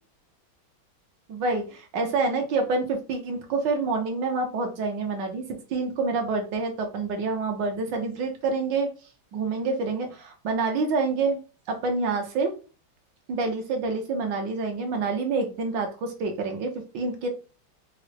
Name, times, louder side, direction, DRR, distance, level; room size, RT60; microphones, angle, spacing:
voice 1, 1.3-5.4 5.7-8.9 9.3-11.4 11.7-12.5 13.3-17.3, right 3 dB, 70° right, 4 dB, 1.3 m, -27 dB
4.8 x 2.0 x 3.2 m, 0.34 s
omnidirectional pair, 2.2 m